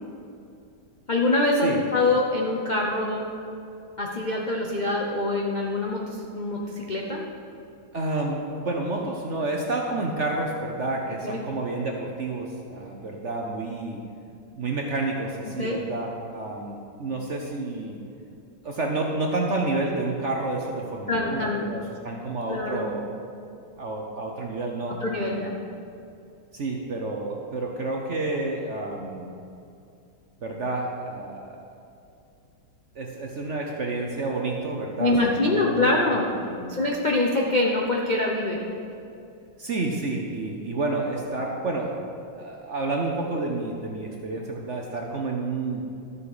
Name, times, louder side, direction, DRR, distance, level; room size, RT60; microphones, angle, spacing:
voice 1, 1.1-3.3 4.0-7.2 11.2-11.4 15.6-15.8 21.1-21.6 22.5-22.9 25.0-25.5 35.0-36.3 36.7-38.6, left 2 dB, 80° left, -2 dB, 0.4 m, -24 dB
voice 2, 1.6-2.1 6.6-6.8 7.9-14.0 14.6-18.0 18.6-23.1 23.8-25.6 26.5-29.3 30.4-31.6 32.9-36.8 39.6-42.0 42.3-45.8, right 2 dB, 55° right, 0 dB, 0.8 m, -30 dB
13.0 x 7.6 x 4.9 m, 2.6 s
omnidirectional pair, 2.3 m